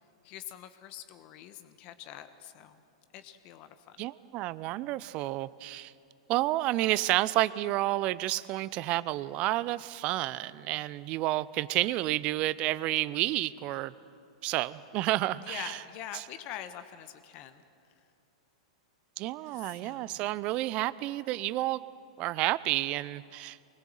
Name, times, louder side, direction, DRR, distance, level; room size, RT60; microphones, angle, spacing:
voice 1, 0.2-2.8 3.1-4.0 15.3-17.6 19.4-20.2, left 11 dB, 40° left, 10 dB, 1.2 m, -45 dB
voice 2, 4.0-5.9 6.3-13.9 14.4-15.8 19.2-21.8 22.2-23.6, right 17 dB, 40° right, 19 dB, 0.6 m, -30 dB
24.0 x 20.5 x 7.7 m, 2.5 s
figure-of-eight pair, 100°, 3 cm